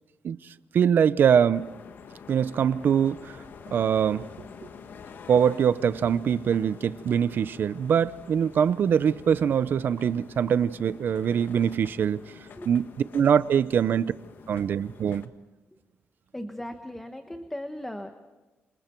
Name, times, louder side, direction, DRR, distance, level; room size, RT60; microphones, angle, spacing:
voice 1, 0.2-1.7 2.3-3.4 3.7-4.3 4.6-4.7 5.3-12.2 12.7-12.9 13.1-14.1 14.5-15.2, right 8 dB, 50° right, 0.7 m, -23 dB
sound 1, 1.5-15.3, left 6 dB, 50° left, 1.4 m, -47 dB
voice 2, 16.3-18.1, left 1 dB, 5° left, 1.3 m, -37 dB
28.0 x 27.5 x 4.6 m
wide cardioid pair, 160°, 4 cm